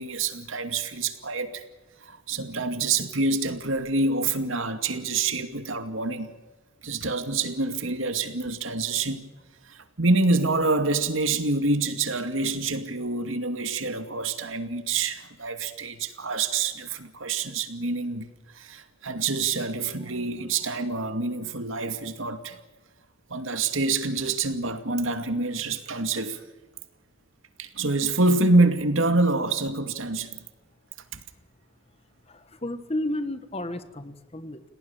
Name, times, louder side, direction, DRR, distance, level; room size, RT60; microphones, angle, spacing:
voice 1, 0.0-1.6 2.0-6.3 6.8-9.3 9.7-18.2 18.5-22.6 23.3-26.4 27.6-30.4 31.1-31.2, right 3 dB, 80° right, 8 dB, 2.4 m, -26 dB
voice 2, 32.3-34.6, left 1 dB, 30° left, 11 dB, 1.5 m, -32 dB
29.5 x 18.5 x 7.4 m, 1.2 s
head